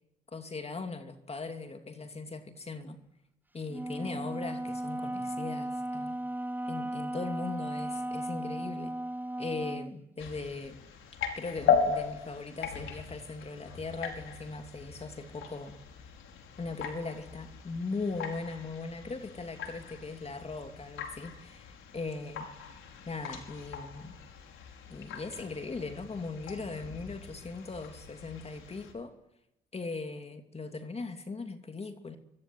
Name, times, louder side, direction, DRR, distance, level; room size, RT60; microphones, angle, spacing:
voice 1, 0.3-3.0 3.5-6.2 6.7-8.9 9.4-10.8 11.4-15.8 16.6-22.5 23.1-24.1 24.9-29.1 29.7-32.2, left 3 dB, 30° left, 6 dB, 2.8 m, -39 dB
Wind instrument woodwind instrument, 3.7-10.0, right 1 dB, 10° right, 1.0 m, -36 dB
sound 1, 10.2-28.9, left 6 dB, 85° left, 5.0 m, -37 dB
26.0 x 23.0 x 9.4 m, 0.87 s
cardioid pair, 90°, 20 cm